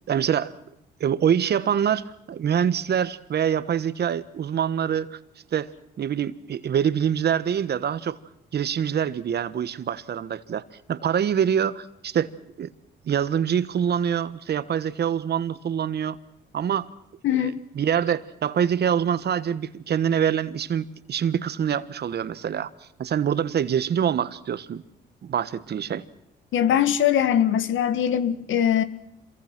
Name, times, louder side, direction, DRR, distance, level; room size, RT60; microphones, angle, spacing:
voice 1, 0.1-0.5 1.0-5.2 5.5-5.7 6.0-8.2 8.5-10.6 10.9-12.3 12.6-12.7 13.0-16.2 16.5-16.9 17.3-22.7 23.0-24.8 25.2-26.1, right 8 dB, 55° right, 15 dB, 1.3 m, -25 dB
voice 2, 26.5-28.8, left 10 dB, 75° left, 13 dB, 1.7 m, -21 dB
27.0 x 23.0 x 6.1 m, 0.78 s
cardioid pair, 90°, 20 cm